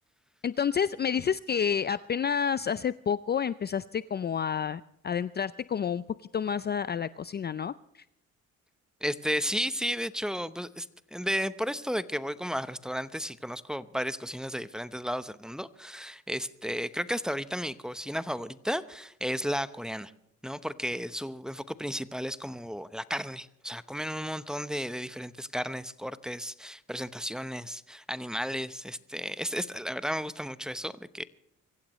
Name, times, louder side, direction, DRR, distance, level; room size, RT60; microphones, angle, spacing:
voice 1, 0.4-6.0 6.3-7.7, left 7 dB, 35° left, 16 dB, 0.5 m, -29 dB
voice 2, 9.0-20.1 20.4-31.2, equal, ahead, 14 dB, 0.9 m, -33 dB
24.5 x 15.5 x 3.1 m, 0.80 s
cardioid pair, 90°, 30 cm